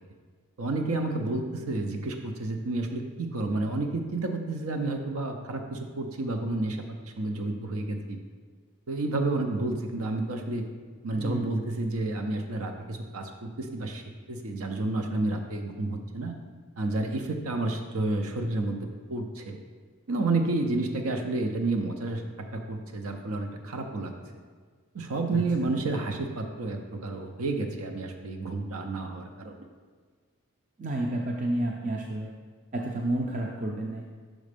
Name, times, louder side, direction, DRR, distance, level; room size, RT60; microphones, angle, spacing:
voice 1, 0.6-8.2 8.9-10.6 11.0-14.0 14.3-16.3 16.8-19.6 20.1-22.2 22.5-24.1 24.9-29.6, right 2 dB, 80° right, 4 dB, 0.6 m, -30 dB
voice 2, 11.1-11.5 25.3-25.4 30.8-32.3 32.7-34.0, right 1 dB, 35° right, -1 dB, 0.4 m, -30 dB
6.3 x 4.1 x 5.1 m, 1.5 s
head